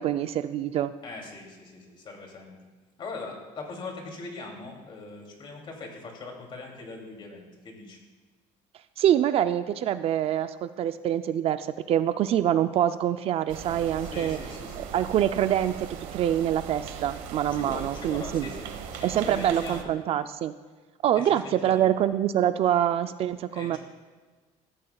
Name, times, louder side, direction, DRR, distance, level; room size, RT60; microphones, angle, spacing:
voice 1, 0.0-0.9 9.0-14.4 14.9-18.5 19.0-20.5 21.0-23.8, right 11 dB, 45° right, 12 dB, 0.4 m, -25 dB
voice 2, 1.0-2.5 3.0-8.0 14.0-14.9 17.5-19.9 21.2-21.9 23.5-23.8, left 3 dB, 40° left, 1 dB, 2.7 m, -41 dB
sound 1, 13.5-19.8, right 8 dB, 80° right, 1.2 m, -39 dB
16.5 x 14.0 x 2.3 m, 1.4 s
cardioid pair, 145°, 14 cm